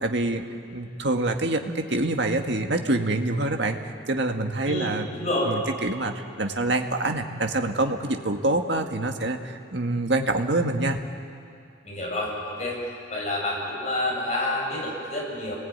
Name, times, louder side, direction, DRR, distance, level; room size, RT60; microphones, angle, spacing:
voice 1, 0.0-0.4 0.7-3.8 4.1-5.1 5.5-11.0, right 2 dB, 60° right, 4 dB, 1.9 m, -26 dB
voice 2, 4.6-5.5 11.8-12.8 13.1-15.5, left 1 dB, 35° left, -3 dB, 7.9 m, -28 dB
30.0 x 20.5 x 9.6 m, 2.4 s
head